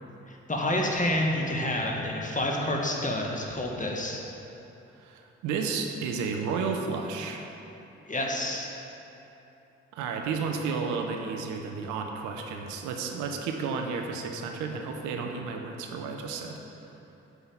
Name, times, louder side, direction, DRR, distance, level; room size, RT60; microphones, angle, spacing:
voice 1, 0.3-4.2 8.1-8.7, left 1 dB, 25° left, -1 dB, 1.8 m, -29 dB
voice 2, 4.9-7.5 9.9-16.6, right 5 dB, 85° right, 3 dB, 0.8 m, -32 dB
8.0 x 5.7 x 7.1 m, 3.0 s
hypercardioid pair, 40°, 29 cm